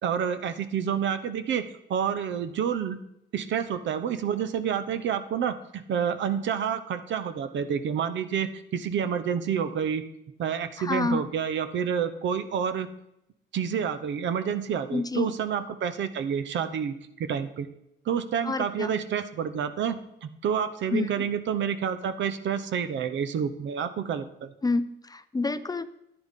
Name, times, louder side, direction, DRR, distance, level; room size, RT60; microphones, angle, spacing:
voice 1, 0.0-3.0 3.3-10.0 10.4-12.9 13.5-17.7 18.0-24.5, right 7 dB, 70° right, 11 dB, 0.8 m, -29 dB
voice 2, 10.8-11.2 14.9-15.3 18.4-18.9 20.9-21.2 24.6-25.9, left 3 dB, 20° left, 12 dB, 0.5 m, -28 dB
10.5 x 10.0 x 3.6 m, 0.82 s
cardioid pair, 90°, 20 cm